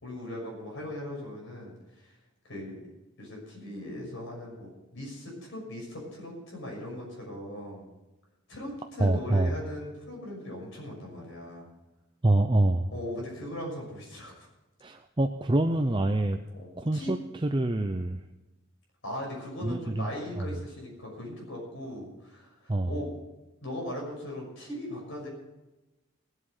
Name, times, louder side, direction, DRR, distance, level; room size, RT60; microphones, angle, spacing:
voice 1, 0.0-2.1 2.4-2.8 3.2-7.8 8.5-11.7 12.9-14.5 16.5-17.1 19.0-23.1 23.6-25.3, left 1 dB, 65° left, -1 dB, 6.1 m, -39 dB
voice 2, 9.0-9.5 12.2-12.9 14.8-16.4 16.8-18.2 19.6-20.1 20.4-20.5 22.7-22.9, right 1 dB, 25° right, 5 dB, 0.6 m, -26 dB
20.0 x 8.2 x 5.7 m, 1.0 s
head